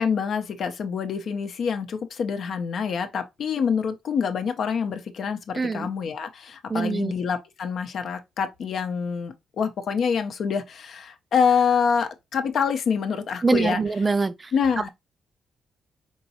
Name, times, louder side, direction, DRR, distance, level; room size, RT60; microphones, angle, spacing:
voice 1, 0.0-13.8 14.5-14.9, left 6 dB, 65° left, 0.6 m, -26 dB
voice 2, 5.6-5.9 6.7-7.1 13.4-14.5 14.8-14.9, right 4 dB, 30° right, 0.3 m, -24 dB
4.5 x 3.0 x 2.7 m
supercardioid pair, 60°, 0 cm